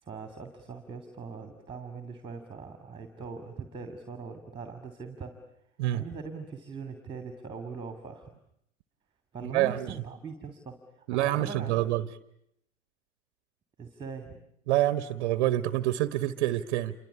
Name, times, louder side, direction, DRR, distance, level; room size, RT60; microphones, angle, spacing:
voice 1, 0.0-5.4 5.9-8.3 9.3-10.7 11.1-11.7 13.8-14.4, right 5 dB, 15° right, 8 dB, 2.8 m, -41 dB
voice 2, 9.4-10.0 11.1-12.1 14.7-16.9, right 14 dB, 50° right, 14 dB, 1.3 m, -27 dB
28.5 x 24.5 x 8.4 m, 0.74 s
hypercardioid pair, 105°, 38 cm